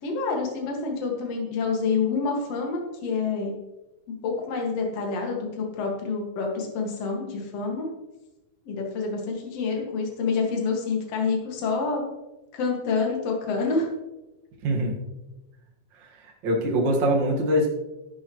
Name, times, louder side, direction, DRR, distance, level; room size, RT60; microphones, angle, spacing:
voice 1, 0.0-3.5 4.2-7.9 8.7-12.0 12.5-13.9, left 4 dB, 50° left, 0 dB, 2.6 m, -27 dB
voice 2, 14.6-15.0 16.0-17.7, equal, 45° right, -1 dB, 1.5 m, -24 dB
12.5 x 11.0 x 3.1 m, 1.0 s
omnidirectional pair, 4.5 m